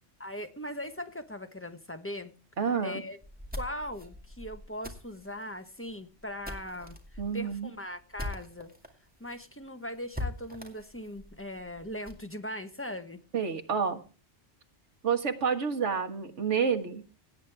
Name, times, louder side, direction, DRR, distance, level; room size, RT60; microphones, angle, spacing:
voice 1, 0.2-2.3 2.8-3.2 3.6-8.7 9.2-13.2, left 1 dB, 10° left, 1.1 m, -39 dB
voice 2, 2.6-3.0 7.2-7.7 13.3-14.0 15.0-17.0, right 6 dB, 85° right, 1.8 m, -29 dB
sound 1, 3.2-8.9 9.3-9.4 9.6-9.7 10.1-12.3, left 1 dB, 5° right, 2.2 m, -42 dB
17.5 x 9.4 x 3.5 m
omnidirectional pair, 1.2 m